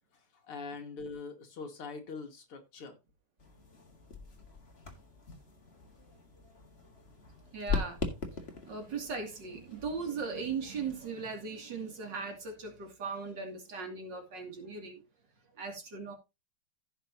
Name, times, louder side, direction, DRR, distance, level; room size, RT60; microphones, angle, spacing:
voice 1, 0.5-3.0, left 4 dB, 90° left, 2.8 m, -42 dB
sound 1, 3.4-11.1, left 5 dB, 30° left, 2.0 m, -41 dB
voice 2, 7.5-8.0 8.6-15.0 15.6-16.1, right 5 dB, 55° right, 3.1 m, -38 dB
15.5 x 6.2 x 2.8 m
omnidirectional pair, 2.4 m